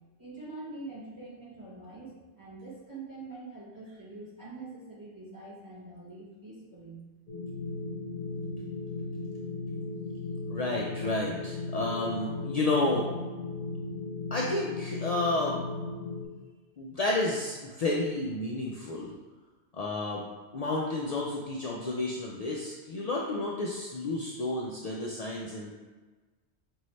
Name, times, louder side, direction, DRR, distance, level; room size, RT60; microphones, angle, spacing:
voice 1, 0.2-7.0, right 3 dB, 15° right, -7 dB, 1.2 m, -44 dB
sound 1, 7.3-16.3, left 3 dB, 50° left, 0.9 m, -36 dB
voice 2, 10.5-13.1 14.3-15.6 16.8-19.1 19.8-20.2 20.5-25.7, left 2 dB, 70° left, -3 dB, 0.3 m, -31 dB
5.2 x 2.7 x 3.1 m, 1.3 s
omnidirectional pair, 1.2 m